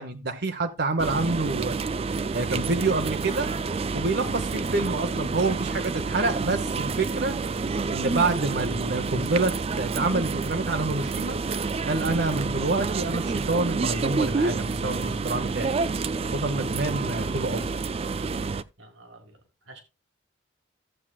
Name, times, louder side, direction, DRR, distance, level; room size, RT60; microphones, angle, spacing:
voice 1, 0.0-1.8 2.3-3.5 3.9-7.3 7.9-11.4 11.8-15.8 16.3-17.7, right 3 dB, 55° right, 1.0 m, -27 dB
sound 1, 1.0-18.6, right 4 dB, 30° right, 0.4 m, -29 dB
sound 2, 3.3-9.0, right 1 dB, 80° left, 1.7 m, -45 dB
voice 2, 16.9-17.3 18.8-19.8, right 2 dB, 80° right, 1.8 m, -49 dB
14.5 x 7.5 x 2.3 m
head